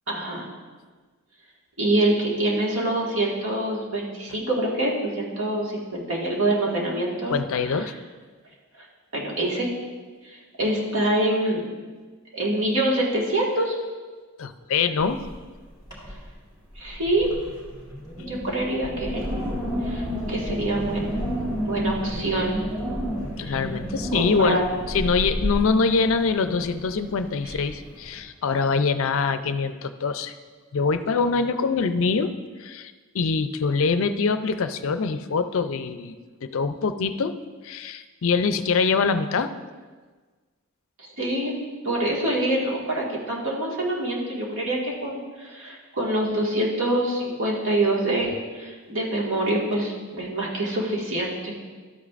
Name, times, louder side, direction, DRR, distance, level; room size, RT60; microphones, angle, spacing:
voice 1, 0.1-0.5 1.8-7.3 7.8-7.9 9.1-9.7 10.2-11.6 12.3-13.8 16.8-17.3 18.2-19.3 19.8-21.3 21.6-22.6 23.4-23.5 24.1-24.6 27.4-27.5 41.0-41.5 41.8-51.6, right 1 dB, 60° right, -3 dB, 1.8 m, -25 dB
voice 2, 7.3-7.9 14.4-15.2 23.4-24.6 24.9-30.3 30.7-32.3 32.6-36.2 36.4-37.3 37.6-39.5, left 4 dB, 60° left, 10 dB, 0.5 m, -24 dB
Wind, 15.0-15.5 15.8-16.3 16.7-28.2, equal, 20° right, 2.6 m, -31 dB
12.5 x 8.3 x 2.5 m, 1.4 s
head